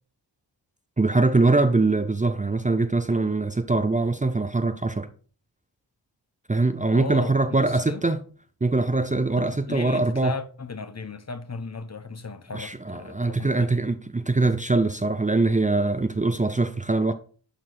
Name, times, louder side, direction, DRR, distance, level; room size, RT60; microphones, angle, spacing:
voice 1, 1.0-5.1 6.5-8.2 8.6-10.3 12.5-17.1, right 3 dB, 20° right, 0.6 m, -23 dB
voice 2, 6.9-8.1 9.3-13.7, left 4 dB, 40° left, 0.9 m, -36 dB
11.0 x 4.6 x 3.9 m
wide cardioid pair, 85°, 43 cm